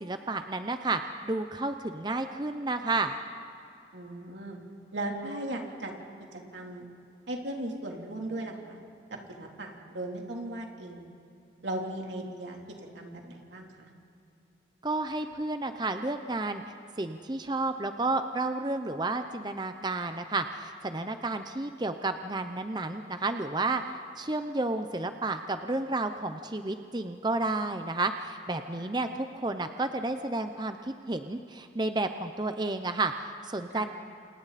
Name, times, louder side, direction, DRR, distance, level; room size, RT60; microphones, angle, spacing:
voice 1, 0.0-3.2 14.8-16.6 17.0-23.8 24.2-33.8, right 2 dB, 25° right, 8 dB, 0.7 m, -31 dB
voice 2, 3.9-4.6 4.9-5.9 6.3-6.9 7.3-8.8 9.3-11.1 11.6-12.6 12.9-13.9 28.8-28.9 33.7-33.9, right 1 dB, 90° right, 0 dB, 3.4 m, -37 dB
29.5 x 27.5 x 4.2 m, 2.7 s
head